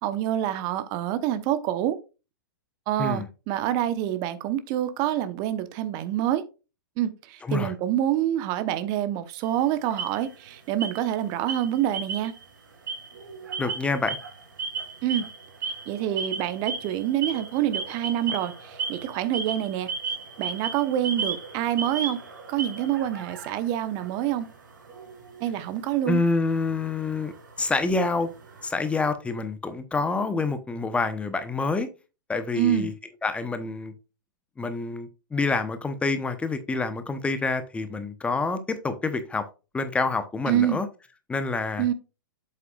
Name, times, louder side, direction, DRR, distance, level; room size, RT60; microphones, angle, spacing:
voice 1, 0.0-2.0 2.9-6.4 7.0-12.3 15.0-15.3 15.9-19.9 20.4-22.2 22.5-24.5 25.4-26.2 32.6-32.9 40.5-40.8 41.8-41.9, right 11 dB, 35° right, 1.0 m, -26 dB
voice 2, 7.4-7.7 13.6-14.2 26.1-27.3 27.6-28.3 28.6-31.9 32.3-32.9 33.2-33.9 34.6-39.5 39.7-40.9 41.3-41.9, left 3 dB, 10° left, 0.9 m, -27 dB
sound 1, 9.4-10.5 10.8-11.2 11.5-12.5 12.7-29.1, right 5 dB, 65° right, 3.7 m, -36 dB
7.9 x 7.7 x 2.4 m
figure-of-eight pair, 105°, 11 cm